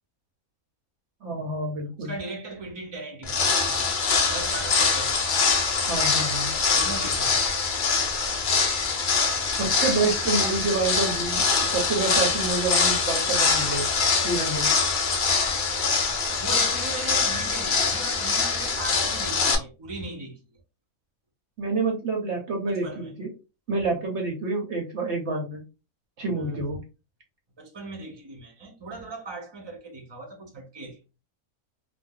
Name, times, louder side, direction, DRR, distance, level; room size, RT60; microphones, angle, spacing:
voice 1, 1.2-2.1 5.8-6.5 9.6-13.8 14.2-14.7 21.6-23.3 23.7-25.6 26.2-26.8, right 3 dB, 55° right, 0.9 m, -28 dB
voice 2, 2.0-5.3 6.7-7.4 8.3-8.6 16.0-20.4 22.7-23.1 26.4-26.6 27.6-31.0, right 3 dB, 30° right, 0.5 m, -39 dB
sound 1, 3.2-19.5, left 4 dB, 65° left, 0.4 m, -24 dB
2.6 x 2.0 x 3.6 m
omnidirectional pair, 1.6 m